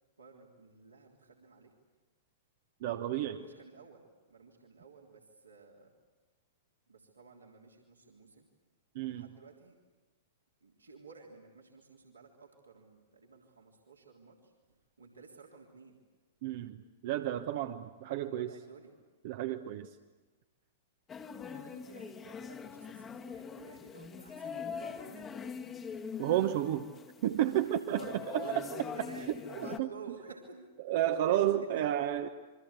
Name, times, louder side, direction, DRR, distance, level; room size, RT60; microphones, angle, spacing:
voice 1, 0.2-1.7 3.0-4.0 4.3-5.9 6.9-8.5 9.0-9.8 10.6-16.0 17.4-17.8 18.3-18.9 21.3-25.3 27.9-31.7, right 5 dB, 80° right, -1 dB, 3.5 m, -52 dB
voice 2, 2.8-3.4 8.9-9.3 16.4-18.5 19.2-20.0 26.2-26.9 27.2-28.0 29.8-29.9 30.8-32.3, right 12 dB, 50° right, 7 dB, 1.1 m, -31 dB
sound 1, 21.1-29.8, left 6 dB, 20° left, 1.4 m, -43 dB
28.5 x 24.0 x 8.2 m, 1.3 s
figure-of-eight pair, 100°, 0 cm